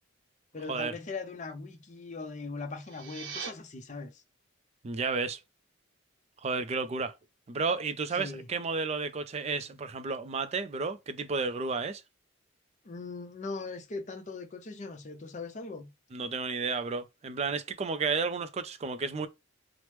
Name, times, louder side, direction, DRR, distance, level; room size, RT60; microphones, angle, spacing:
voice 1, 0.5-4.2 8.1-8.5 12.8-15.9, left 3 dB, 35° left, 0.6 m, -40 dB
sound 1, 2.7-3.5, right 5 dB, 65° right, 0.7 m, -40 dB
voice 2, 4.8-5.4 6.4-7.1 7.5-12.0 16.1-19.3, right 4 dB, 35° right, 0.4 m, -32 dB
3.0 x 2.0 x 3.1 m
head